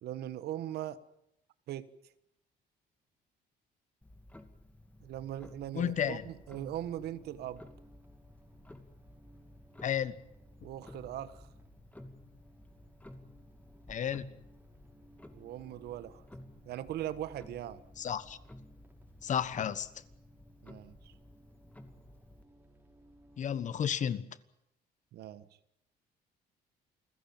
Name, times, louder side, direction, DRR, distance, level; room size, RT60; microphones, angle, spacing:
voice 1, 0.0-1.0 1.7-1.9 5.0-7.6 10.6-11.4 15.3-16.2 16.7-17.8 20.6-21.1 25.1-25.4, right 12 dB, 70° right, 1.5 m, -40 dB
Clock, 4.0-22.4, left 1 dB, 10° left, 2.4 m, -54 dB
sound 1, 5.3-23.9, right 1 dB, 10° right, 4.8 m, -61 dB
voice 2, 5.7-6.2 9.8-10.2 13.9-14.3 18.0-18.4 19.2-19.9 23.4-24.4, left 9 dB, 45° left, 1.3 m, -32 dB
28.5 x 15.0 x 9.0 m
cardioid pair, 110°, 17 cm